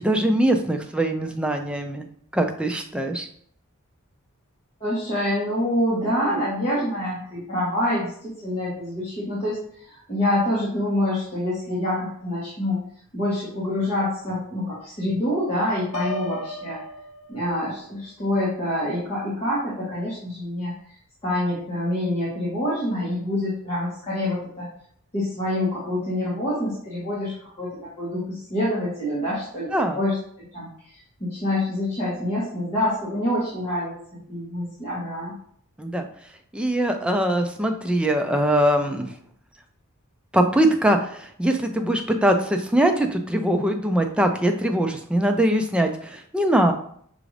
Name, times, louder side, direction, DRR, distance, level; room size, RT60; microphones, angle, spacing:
voice 1, 0.0-2.1 2.3-3.3 29.7-30.0 35.8-36.1 36.5-39.1 40.3-46.7, right 1 dB, 5° right, 4 dB, 0.3 m, -22 dB
voice 2, 4.8-12.8 13.1-16.8 17.3-20.9 21.2-24.7 25.1-30.2 30.5-33.9 34.3-35.4, left 1 dB, 30° left, -9 dB, 1.3 m, -26 dB
Piano, 15.9-17.8, left 2 dB, 85° left, 0.6 m, -34 dB
5.9 x 2.5 x 3.2 m, 0.63 s
head